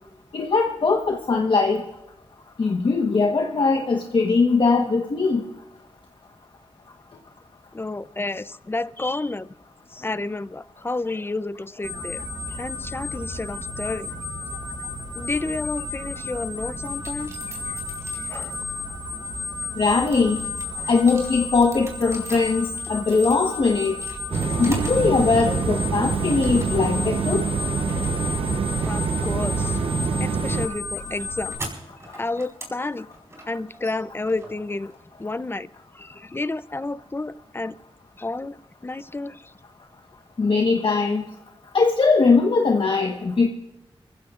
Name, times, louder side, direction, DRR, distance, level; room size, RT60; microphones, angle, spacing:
voice 1, 0.3-1.8 2.6-5.4 19.8-20.5 20.9-23.9 24.6-27.4 40.4-41.3 41.7-43.5, left 4 dB, 60° left, 2 dB, 1.3 m, -20 dB
voice 2, 7.7-9.5 9.9-14.1 14.5-14.6 15.1-17.8 18.3-18.6 28.8-29.8 30.2-31.5 32.2-33.1 33.5-34.9 35.2-37.8 38.2-38.6 38.8-39.5, left 2 dB, 25° left, 15 dB, 0.6 m, -31 dB
sound 1, 11.8-31.6, left 3 dB, ahead, 6.4 m, -33 dB
sound 2, 16.8-18.8 19.3-25.1 25.4-26.0 26.4-27.0 27.3-35.2, right 1 dB, 30° right, 4.6 m, -43 dB
sound 3, 24.3-30.7, right 5 dB, 70° right, 0.9 m, -25 dB
28.5 x 15.0 x 2.5 m, 0.96 s
wide cardioid pair, 85°, 10 cm